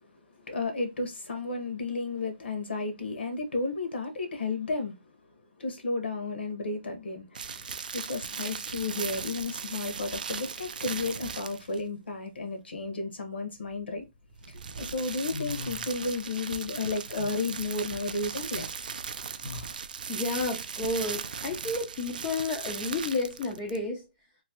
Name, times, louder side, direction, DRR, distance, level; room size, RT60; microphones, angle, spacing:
voice 1, 0.5-4.9 5.6-14.0 14.5-18.7 19.5-19.6, left 3 dB, 85° left, 1.3 m, -33 dB
sound 1, 7.3-11.8 14.3-23.9, right 6 dB, 50° right, 0.4 m, -38 dB
sound 2, 13.7-14.5 14.9-16.5 16.7-19.8, left 4 dB, 65° left, 0.4 m, -43 dB
voice 2, 20.1-24.1, left 3 dB, 15° left, 0.5 m, -31 dB
3.1 x 2.9 x 2.9 m
hypercardioid pair, 175°, 6 cm